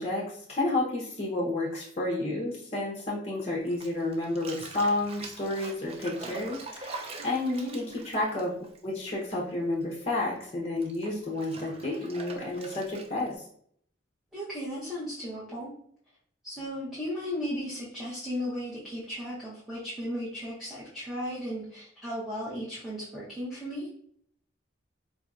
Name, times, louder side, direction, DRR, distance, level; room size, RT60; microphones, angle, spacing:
voice 1, 0.0-13.4, left 2 dB, 30° left, -4 dB, 0.7 m, -31 dB
Bathtub (filling or washing), 3.7-9.5 9.8-13.3, right 3 dB, 30° right, 0.4 m, -44 dB
voice 2, 7.2-7.7 14.3-15.7 16.4-23.9, equal, ahead, -9 dB, 0.8 m, -35 dB
4.3 x 2.7 x 2.4 m, 0.64 s
head